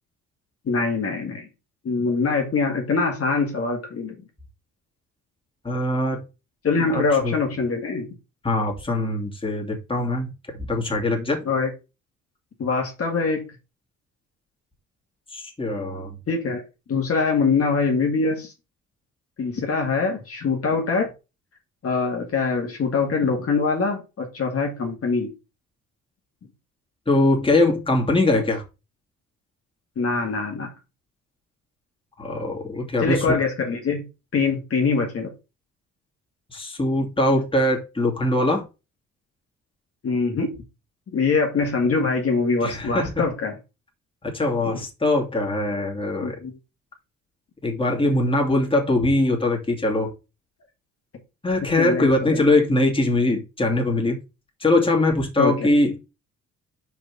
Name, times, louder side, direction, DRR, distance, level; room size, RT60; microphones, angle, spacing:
voice 1, 0.7-1.5 1.8-4.1 6.6-8.1 11.5-11.7 12.6-13.4 16.3-16.6 16.9-18.5 19.4-21.1 21.8-25.3 30.0-30.7 33.0-34.0 34.3-35.3 40.0-40.5 41.1-43.6 46.2-46.5 51.8-52.4 55.4-55.6, left 4 dB, 50° left, 2.1 m, -23 dB
voice 2, 5.6-6.2 6.8-7.3 8.4-11.4 15.3-16.2 27.1-28.6 32.2-33.3 36.5-38.6 42.6-43.3 44.3-46.4 47.6-50.1 51.4-54.2 54.6-56.0, left 2 dB, 15° left, 2.6 m, -22 dB
5.7 x 5.1 x 5.5 m
cardioid pair, 90°, 30 cm